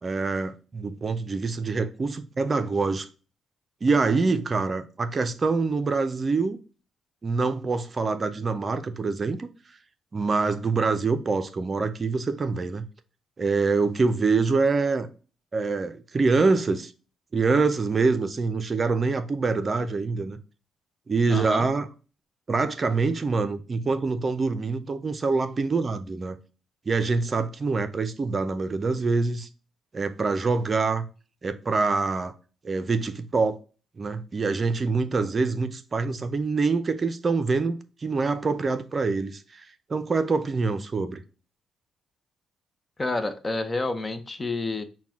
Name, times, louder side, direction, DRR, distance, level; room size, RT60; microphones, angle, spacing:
voice 1, 0.0-3.1 3.8-6.6 7.2-9.5 10.1-12.8 13.4-15.1 15.5-16.9 17.3-20.4 21.1-21.9 22.5-26.4 26.9-29.5 29.9-31.0 31.4-32.3 32.6-33.6 34.0-41.2, right 4 dB, 35° right, 0.5 m, -25 dB
voice 2, 21.3-21.7 43.0-44.8, left 2 dB, 25° left, 0.7 m, -29 dB
5.8 x 2.3 x 3.6 m
cardioid pair, 90°, 0 cm